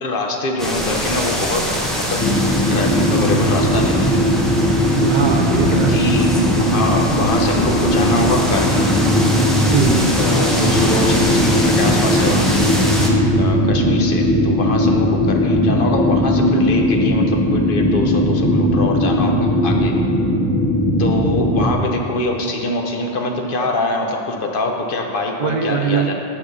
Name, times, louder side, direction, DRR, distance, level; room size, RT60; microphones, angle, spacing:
voice 1, 0.0-2.3 2.6-4.2 5.7-8.9 10.2-12.7 13.4-20.0 21.0-26.1, left 2 dB, 55° left, 2 dB, 0.9 m, -24 dB
sound 1, 0.6-13.1, equal, ahead, 0.7 m, -23 dB
sound 2, 2.2-21.7, equal, 25° left, 0.3 m, -18 dB
voice 2, 5.0-6.0 9.7-10.1 23.6-23.7 25.4-26.1, right 6 dB, 55° right, 3 dB, 0.5 m, -20 dB
6.0 x 5.9 x 6.6 m, 2.5 s
omnidirectional pair, 1.2 m